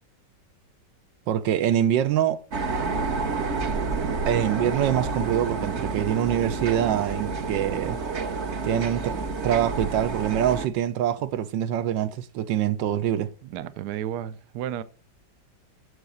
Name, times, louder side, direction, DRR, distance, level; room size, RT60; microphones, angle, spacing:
voice 1, 1.3-2.4 4.3-8.0 8.6-13.3, right 10 dB, 85° right, 1.4 m, -25 dB
sound 1, 2.5-10.7, right 4 dB, 45° right, 1.1 m, -29 dB
voice 2, 13.4-14.8, right 11 dB, 70° right, 1.2 m, -32 dB
9.7 x 6.7 x 7.6 m
omnidirectional pair, 1.9 m